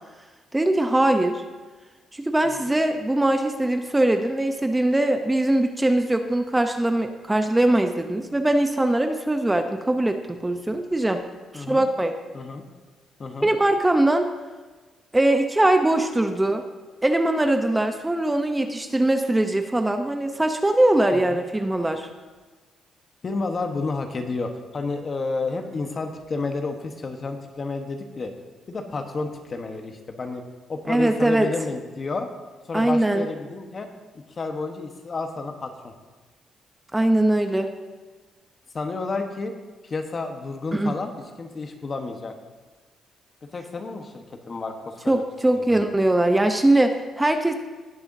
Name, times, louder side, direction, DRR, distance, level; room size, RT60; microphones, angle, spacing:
voice 1, 0.5-1.4 2.1-11.2 11.5-12.2 13.4-14.3 15.1-16.7 17.0-22.1 30.9-31.5 32.7-33.3 36.9-37.7 40.7-41.0 45.1-47.5, right 1 dB, 15° right, 6 dB, 0.7 m, -21 dB
voice 2, 23.2-28.3 28.7-30.4 30.7-32.3 32.7-33.9 34.3-35.9 38.7-39.5 39.8-41.1 41.4-42.3 43.5-45.2 45.5-45.8, left 3 dB, 40° left, 5 dB, 1.1 m, -31 dB
18.5 x 6.9 x 2.7 m, 1.3 s
cardioid pair, 90°, 0 cm